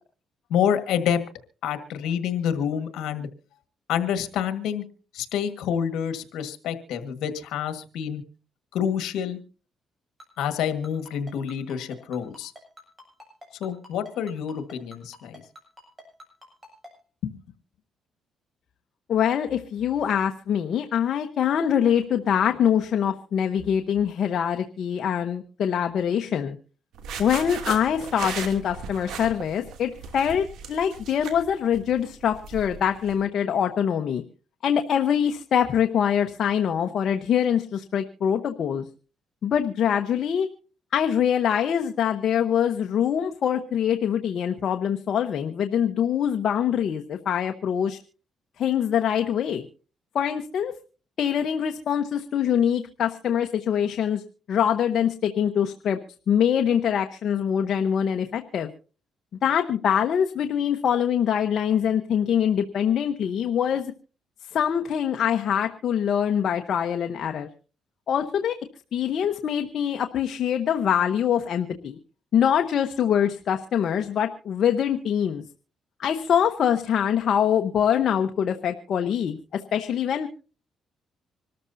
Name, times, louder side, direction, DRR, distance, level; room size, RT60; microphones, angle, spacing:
voice 1, 0.5-1.2 1.6-3.3 3.9-4.8 5.1-8.2 8.7-9.4 10.4-12.5 13.6-15.4 17.2-17.3, left 8 dB, 85° left, 9 dB, 1.6 m, -27 dB
Ringtone, 10.2-16.9, equal, 20° right, 7.6 m, -46 dB
voice 2, 19.1-26.6 27.2-34.2 34.6-38.9 39.4-40.5 40.9-48.0 48.6-49.6 50.1-50.7 51.2-54.2 54.5-56.0 56.3-58.7 59.4-63.9 64.5-67.5 68.1-68.5 68.9-72.0 72.3-75.4 76.0-80.3, left 8 dB, 60° left, 5 dB, 1.0 m, -24 dB
sound 1, 26.9-33.2, right 6 dB, 80° right, 2.7 m, -37 dB
26.0 x 13.5 x 2.7 m, 0.36 s
cardioid pair, 90°, 0 cm